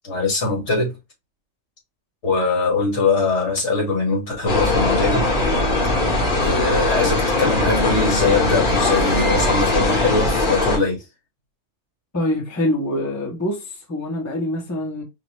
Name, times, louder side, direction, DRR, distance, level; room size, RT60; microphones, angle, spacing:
voice 1, 0.0-1.0 2.2-5.2 6.3-11.0, left 3 dB, 65° left, 2.0 m, -22 dB
sound 1, 4.5-10.8, left 2 dB, 40° left, 1.3 m, -20 dB
voice 2, 12.1-15.0, left 1 dB, 15° left, 0.9 m, -25 dB
4.7 x 2.5 x 3.1 m
omnidirectional pair, 1.3 m